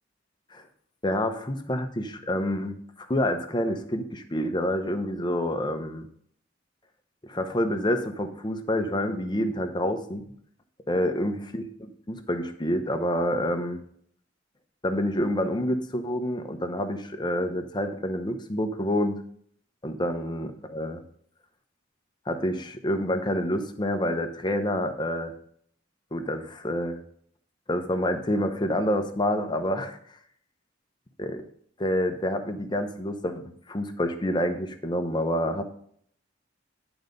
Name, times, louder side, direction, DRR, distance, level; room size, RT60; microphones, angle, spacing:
voice 1, 1.0-6.1 7.2-10.2 10.9-11.6 12.1-13.8 14.8-19.2 19.8-21.0 22.3-25.3 26.1-27.0 27.7-30.0 31.2-31.4 31.8-35.6, left 1 dB, 25° left, 6 dB, 0.8 m, -28 dB
11.0 x 4.0 x 5.3 m, 0.64 s
head